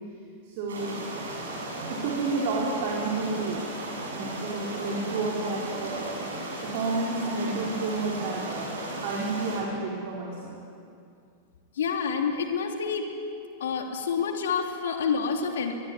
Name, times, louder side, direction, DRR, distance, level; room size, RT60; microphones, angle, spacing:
voice 1, 0.5-0.9 1.9-3.6 4.0-6.2 6.6-8.7 9.0-10.5, right 3 dB, 50° right, -3 dB, 4.6 m, -30 dB
small waterfall, 0.7-9.6, right 1 dB, 65° right, 7.6 m, -36 dB
voice 2, 11.7-13.1 13.6-15.7, left 6 dB, 65° left, 4 dB, 3.0 m, -28 dB
23.0 x 23.0 x 9.7 m, 2.4 s
figure-of-eight pair, 90°, 0 cm